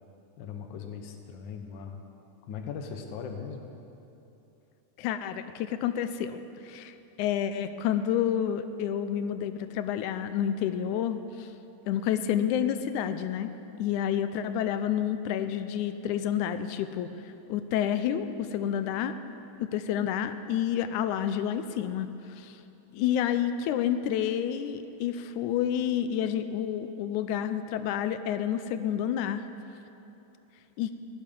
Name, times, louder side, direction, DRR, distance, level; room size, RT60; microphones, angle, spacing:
voice 1, 0.4-2.0 2.5-3.8, left 6 dB, 70° left, 4 dB, 1.1 m, -39 dB
voice 2, 5.0-11.5 11.9-13.5 13.8-19.2 19.6-22.1 22.4-22.6 22.9-29.5 30.8-30.9, left 9 dB, 85° left, 10 dB, 2.1 m, -29 dB
17.0 x 11.0 x 5.3 m, 2.9 s
omnidirectional pair, 3.5 m